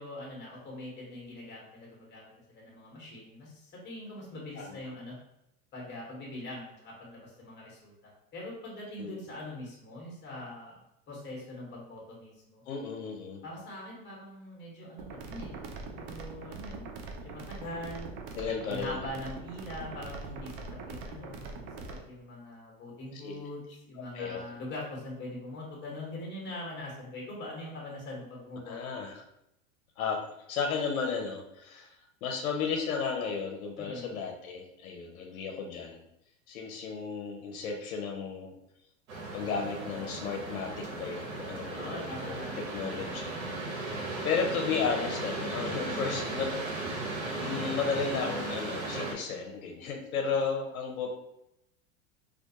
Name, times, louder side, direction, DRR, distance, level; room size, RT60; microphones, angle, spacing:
voice 1, 0.0-5.2 5.7-7.9 8.3-10.8 11.1-12.6 13.4-16.8 17.1-18.1 18.7-20.5 20.8-21.7 22.1-29.1 33.8-34.1 41.8-42.6, left 1 dB, 25° left, -4 dB, 1.0 m, -42 dB
voice 2, 12.7-13.4 18.3-19.0 23.1-23.4 24.1-24.4 28.7-29.1 30.0-31.9 32.2-36.0 36.5-38.5 39.3-43.3 43.7-46.5 46.8-47.1 47.4-51.1, left 5 dB, 85° left, 3 dB, 0.6 m, -34 dB
sound 1, 15.0-22.0, right 3 dB, 50° right, 0.5 m, -42 dB
sound 2, 39.1-49.1, right 2 dB, 85° right, 0.8 m, -36 dB
2.4 x 2.2 x 2.8 m, 0.83 s
hypercardioid pair, 115°, 41 cm